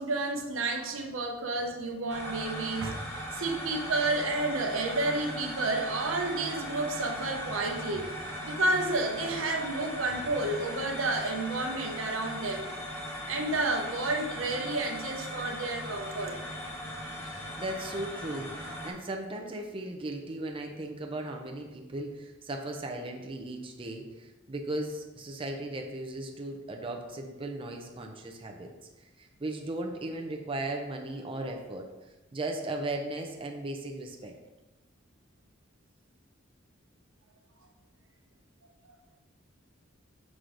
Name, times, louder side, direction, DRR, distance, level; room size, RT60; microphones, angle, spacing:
voice 1, 0.0-12.7 13.3-16.4 38.9-39.0, right 2 dB, 85° right, 3 dB, 0.8 m, -31 dB
sound 1, 2.1-18.9, equal, 15° left, 1.2 m, -39 dB
voice 2, 17.2-28.7 29.2-31.9 32.3-34.3, right 2 dB, 25° right, 2 dB, 0.6 m, -37 dB
6.2 x 4.8 x 3.8 m, 1.1 s
head